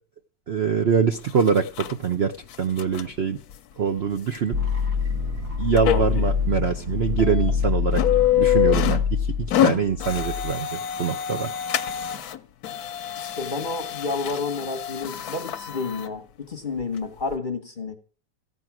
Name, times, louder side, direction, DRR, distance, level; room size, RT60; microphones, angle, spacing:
voice 1, 0.5-3.4 3.8-4.6 5.6-8.0 8.4-11.5, right 6 dB, 70° right, 0.6 m, -24 dB
sound 1, 1.2-1.9 2.4-3.1 3.5-3.6 4.4-4.5 4.9-5.0 5.8-6.3 6.8-6.9 7.2-7.5 7.9-9.1 9.4-12.4 12.6-16.1 16.8-16.9 17.3-17.4, left 12 dB, 60° left, 1.1 m, -26 dB
sound 2, 4.5-10.5, left 6 dB, 50° right, 2.3 m, -25 dB
voice 2, 13.4-18.0, left 4 dB, 35° left, 0.9 m, -30 dB
15.0 x 9.2 x 6.0 m
omnidirectional pair, 2.2 m